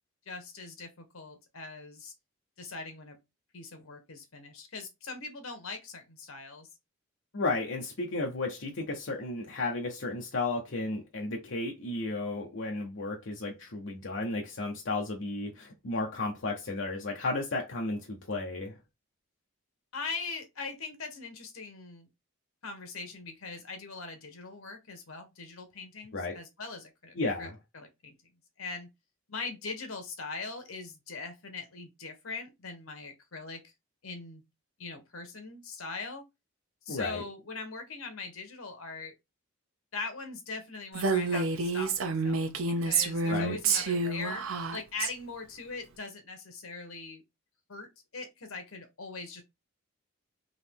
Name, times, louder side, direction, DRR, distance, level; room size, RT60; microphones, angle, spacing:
voice 1, 0.3-2.1 2.6-3.2 3.5-6.7 19.9-22.1 22.6-28.2 28.6-28.9 29.3-33.6 34.0-34.4 34.8-36.2 36.9-39.1 39.9-42.4 42.8-44.4 44.7-47.2 47.7-47.9 48.1-49.4, left 4 dB, 85° left, 1.2 m, -41 dB
voice 2, 7.3-18.8 26.1-26.4 27.2-27.5 36.9-37.2 43.3-43.6, left 2 dB, 60° left, 0.7 m, -33 dB
Female speech woman speaking, 40.9-45.1, right 4 dB, 80° right, 0.7 m, -29 dB
3.9 x 2.9 x 3.5 m
head